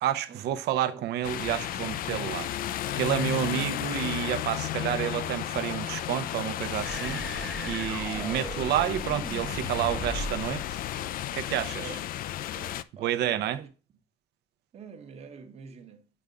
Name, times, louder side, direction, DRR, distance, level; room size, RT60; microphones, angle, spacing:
voice 1, 0.0-10.8 11.3-11.9 13.0-13.6, right 11 dB, 65° right, 0.8 m, -30 dB
sound 1, 1.2-12.8, left 12 dB, 50° left, 0.4 m, -33 dB
voice 2, 1.8-2.2 3.4-3.8 8.1-8.5 9.5-9.7 11.8-12.0 12.3-13.7 14.7-16.1, right 6 dB, 35° right, 1.1 m, -47 dB
sound 2, 6.8-10.5, right 1 dB, 5° right, 1.1 m, -38 dB
7.9 x 3.6 x 5.2 m
cardioid pair, 160°, 18 cm